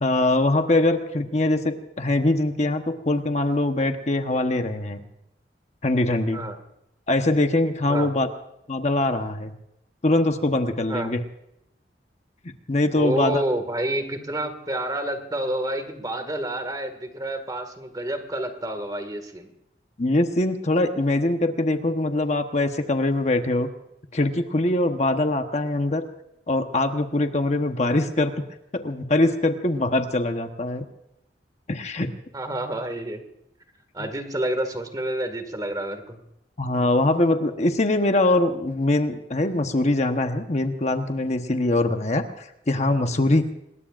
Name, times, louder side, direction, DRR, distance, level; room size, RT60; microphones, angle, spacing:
voice 1, 0.0-5.0 5.8-6.4 7.1-8.3 8.7-9.5 10.0-11.2 12.7-13.4 20.0-23.7 24.1-26.0 26.5-28.3 28.7-30.8 31.7-32.1 36.6-43.5, left 2 dB, 40° left, 6 dB, 1.1 m, -22 dB
voice 2, 12.9-19.5 32.3-33.2 33.9-36.2, right 1 dB, 20° right, 8 dB, 2.0 m, -29 dB
26.5 x 20.5 x 2.5 m, 0.83 s
head